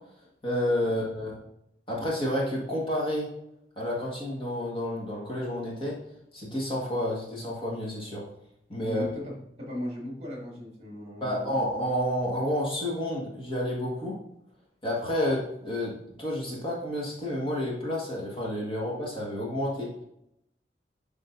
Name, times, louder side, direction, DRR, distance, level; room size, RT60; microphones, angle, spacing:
voice 1, 0.4-1.4 1.9-3.3 3.7-6.0 6.3-8.2 8.7-9.1 11.2-14.1 14.8-19.9, left 1 dB, 30° left, -4 dB, 1.6 m, -30 dB
voice 2, 8.8-11.6, equal, 35° right, -3 dB, 2.2 m, -38 dB
10.5 x 3.7 x 2.6 m, 0.79 s
head